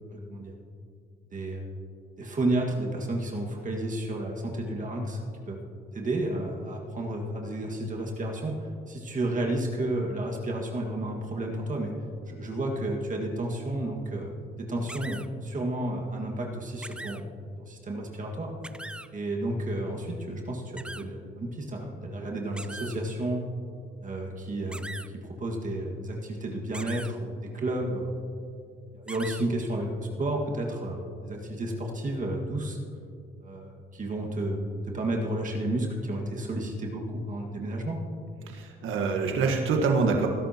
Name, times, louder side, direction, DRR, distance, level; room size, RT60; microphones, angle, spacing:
voice 1, 0.1-0.5 1.3-1.7 2.2-5.2 5.5-5.6 5.9-8.6 8.9-11.9 12.3-14.3 14.6-17.3 17.7-18.5 19.1-23.4 24.0-28.1 28.9-32.8 33.4-38.0, right 1 dB, 40° right, 0 dB, 1.8 m, -31 dB
sound 1, 14.9-15.3 16.8-17.2 18.6-19.1 20.8-21.0 22.6-23.0 24.7-25.1 26.7-27.1 29.1-29.4, right 1 dB, 5° right, 0.4 m, -40 dB
voice 2, 38.4-40.3, right 4 dB, 85° right, 2 dB, 1.4 m, -25 dB
19.5 x 11.0 x 2.9 m, 2.4 s
cardioid pair, 90°, 20 cm